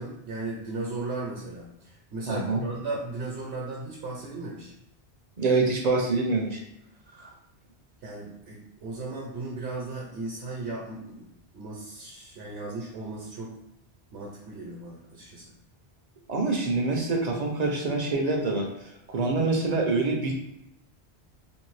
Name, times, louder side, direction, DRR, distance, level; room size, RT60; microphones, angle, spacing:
voice 1, 0.0-4.7 8.0-13.6 14.1-15.4, right 3 dB, 80° right, -4 dB, 1.0 m, -36 dB
voice 2, 2.3-2.6 5.4-6.6 7.2-7.3 16.3-20.3, right 3 dB, 55° right, 1 dB, 0.5 m, -26 dB
2.6 x 2.6 x 3.1 m, 0.80 s
omnidirectional pair, 1.1 m